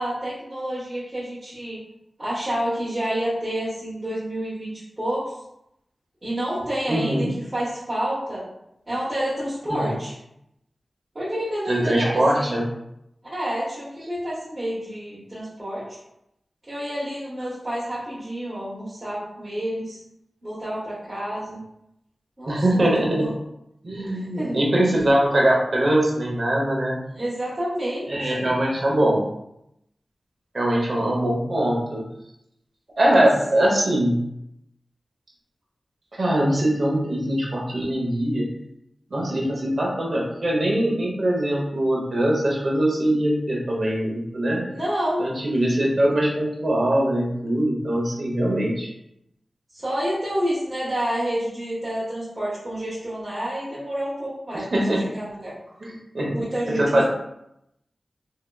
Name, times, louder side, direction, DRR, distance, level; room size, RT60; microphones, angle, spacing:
voice 1, 0.0-1.8 2.2-4.7 5.0-5.3 6.2-8.4 8.9-10.1 11.1-12.6 13.2-16.0 16.7-20.0 20.4-21.6 22.4-23.3 24.1-24.6 27.1-28.6 44.6-45.2 49.7-55.5 56.3-57.0, equal, 35° right, -10 dB, 1.1 m, -29 dB
voice 2, 6.9-7.3 9.7-9.9 11.7-12.6 22.5-23.3 23.8-27.0 28.1-29.3 30.5-32.0 33.0-34.2 36.1-38.5 39.1-44.6 45.2-48.9 54.5-55.1 55.8-56.3 56.7-57.0, right 1 dB, 60° right, -2 dB, 0.9 m, -22 dB
3.4 x 2.8 x 2.3 m, 0.81 s
wide cardioid pair, 60°, 0 cm